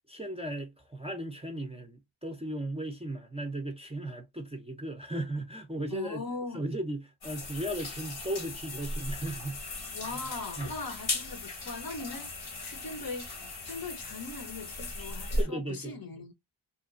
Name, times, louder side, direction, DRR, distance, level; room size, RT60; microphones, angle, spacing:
voice 1, 0.1-6.2 6.5-9.6 10.6-10.7 15.4-15.9, right 1 dB, 15° right, 0.4 m, -36 dB
voice 2, 5.9-6.7 9.9-13.3 13.7-16.3, left 3 dB, 45° left, 0.7 m, -40 dB
sound 1, 7.2-15.4, left 2 dB, 70° left, 0.9 m, -37 dB
2.8 x 2.2 x 2.4 m
wide cardioid pair, 70°, 48 cm